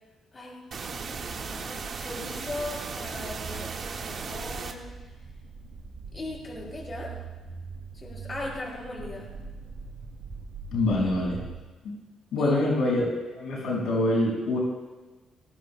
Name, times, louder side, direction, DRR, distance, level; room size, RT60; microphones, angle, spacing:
voice 1, 0.3-4.9 6.1-7.2 7.9-9.3 12.4-12.5, left 2 dB, 30° left, -2 dB, 5.6 m, -39 dB
sound 1, 0.7-4.7, right 5 dB, 55° right, 1.5 m, -36 dB
sound 2, 2.1-11.6, right 5 dB, 75° right, 4.8 m, -43 dB
voice 2, 10.7-11.4 11.8-11.9 12.3-13.0 13.3-14.6, left 2 dB, 80° left, -3 dB, 5.4 m, -25 dB
19.5 x 19.0 x 2.2 m, 1.2 s
cardioid pair, 90°, 0 cm